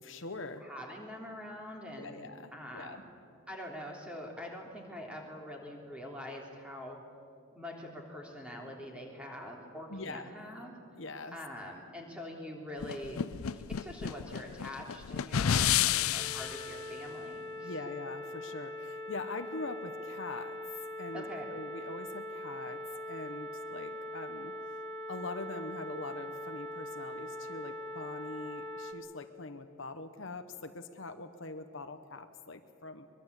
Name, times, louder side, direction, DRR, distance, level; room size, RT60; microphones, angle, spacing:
voice 1, 0.0-0.7 2.0-3.0 9.9-10.3 11.0-11.4 15.8-16.1 17.6-20.6 21.0-22.8 23.1-24.5 25.1-33.1, left 3 dB, 60° left, 8 dB, 1.1 m, -43 dB
voice 2, 0.6-3.1 3.5-7.0 7.5-10.8 11.3-13.2 13.5-17.7 21.1-21.4, left 1 dB, 5° right, -1 dB, 3.4 m, -44 dB
sound 1, 12.8-16.7, left 9 dB, 80° left, 0.5 m, -30 dB
sound 2, 16.2-28.9, left 1 dB, 20° left, 1.9 m, -42 dB
23.0 x 22.5 x 8.3 m, 2.4 s
head